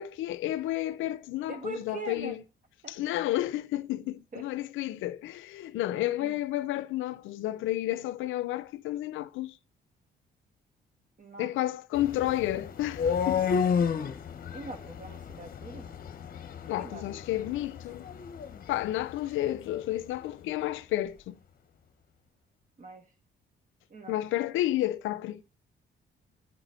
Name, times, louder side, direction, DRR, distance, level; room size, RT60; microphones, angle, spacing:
voice 1, 0.0-2.4 2.9-9.6 11.4-13.5 16.7-18.1 18.7-21.4 24.1-25.4, left 14 dB, 80° left, 0.4 m, -31 dB
voice 2, 1.5-2.4 2.8-2.9 4.3-4.5 6.2-6.4 11.2-11.5 14.5-16.0 16.6-17.0 22.8-23.1 23.9-24.2, right 3 dB, 40° right, 1.3 m, -42 dB
sound 1, 11.9-19.9, left 6 dB, 45° left, 0.8 m, -32 dB
9.6 x 4.0 x 4.2 m
cardioid pair, 90°, 20 cm